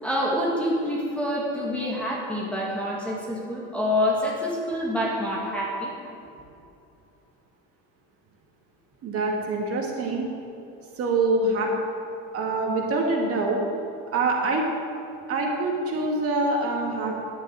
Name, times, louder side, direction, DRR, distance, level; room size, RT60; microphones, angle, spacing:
voice 1, 0.0-5.9, left 1 dB, 5° left, -4 dB, 2.0 m, -27 dB
voice 2, 9.0-10.3 11.0-11.7 12.3-13.6 14.1-14.7 15.3-17.2, right 2 dB, 45° right, 0 dB, 2.2 m, -25 dB
10.5 x 9.4 x 9.1 m, 2.7 s
cardioid pair, 170°, 34 cm